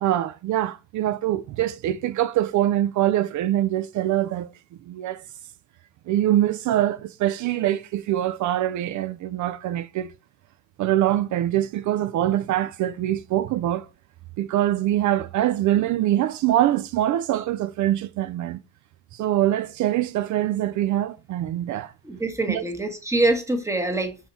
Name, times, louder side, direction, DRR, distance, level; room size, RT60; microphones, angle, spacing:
voice 1, 0.0-4.5 4.9-5.2 6.1-10.1 10.8-13.9 14.4-18.6 19.1-21.9 22.5-22.6, right 13 dB, 70° right, 0.5 m, -24 dB
voice 2, 22.0-24.2, right 2 dB, 10° right, 1.4 m, -24 dB
5.5 x 4.5 x 4.1 m
cardioid pair, 90°, 30 cm